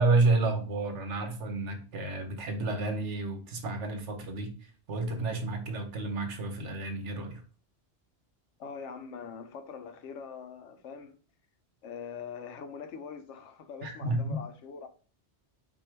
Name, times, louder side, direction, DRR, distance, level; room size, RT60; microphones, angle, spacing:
voice 1, 0.0-7.4 13.8-14.4, right 3 dB, 85° right, 1.2 m, -30 dB
voice 2, 8.6-11.2 11.8-14.9, left 6 dB, 85° left, 1.0 m, -43 dB
4.4 x 2.6 x 4.5 m
omnidirectional pair, 1.2 m